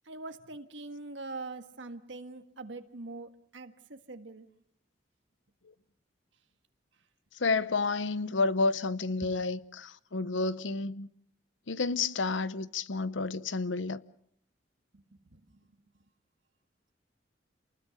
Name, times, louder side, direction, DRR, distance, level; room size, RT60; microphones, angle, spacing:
voice 1, 0.1-4.5 9.2-9.4 14.9-15.5, right 3 dB, 80° right, 1.6 m, -43 dB
voice 2, 7.4-11.1 11.7-14.0, left 3 dB, 85° left, 0.9 m, -30 dB
28.5 x 20.5 x 6.5 m
head